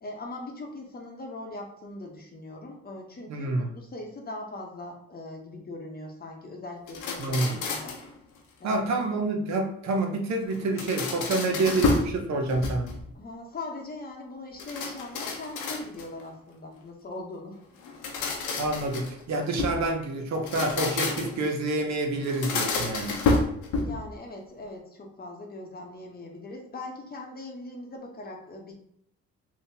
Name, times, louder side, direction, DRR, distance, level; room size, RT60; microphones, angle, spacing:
voice 1, 0.0-8.0 8.6-9.1 11.1-11.4 13.1-17.6 23.8-28.7, left 2 dB, 30° left, 1 dB, 0.8 m, -40 dB
voice 2, 3.3-3.7 7.2-7.6 8.6-12.9 18.6-23.2, right 2 dB, 65° right, 3 dB, 0.7 m, -28 dB
sound 1, 6.9-8.1 10.5-12.2 12.5-13.1 14.6-16.2 17.8-19.8 20.4-21.5 22.2-24.1, left 3 dB, 90° left, 0.7 m, -29 dB
3.5 x 2.7 x 2.7 m, 0.72 s
cardioid pair, 90°, 30 cm